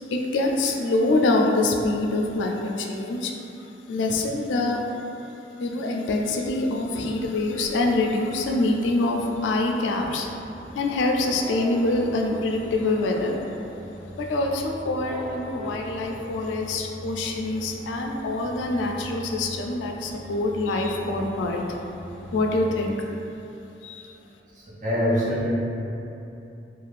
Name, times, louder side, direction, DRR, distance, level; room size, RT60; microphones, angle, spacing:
voice 1, 0.1-5.1 5.6-10.3 10.7-13.4 14.2-21.8 22.3-23.0 23.8-24.1, left 2 dB, 85° left, 2 dB, 0.3 m, -25 dB
sound 1, 6.6-22.9, equal, 5° right, 0.3 m, -42 dB
voice 2, 24.5-25.5, equal, 45° right, -7 dB, 0.6 m, -24 dB
2.4 x 2.4 x 3.2 m, 2.9 s
head